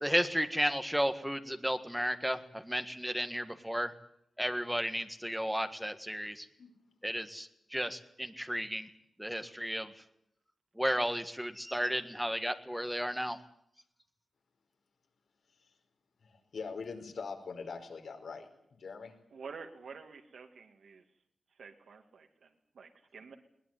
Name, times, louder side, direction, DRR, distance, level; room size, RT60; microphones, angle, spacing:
voice 1, 0.0-3.9 4.4-6.5 7.0-8.9 9.2-9.9 10.8-13.4, equal, ahead, 9 dB, 1.8 m, -33 dB
voice 2, 16.2-19.1, left 5 dB, 65° left, 5 dB, 5.2 m, -43 dB
voice 3, 19.3-21.0 21.5-23.3, right 5 dB, 70° right, 5 dB, 2.3 m, -49 dB
21.0 x 19.5 x 9.4 m, 0.73 s
wide cardioid pair, 140°, 0 cm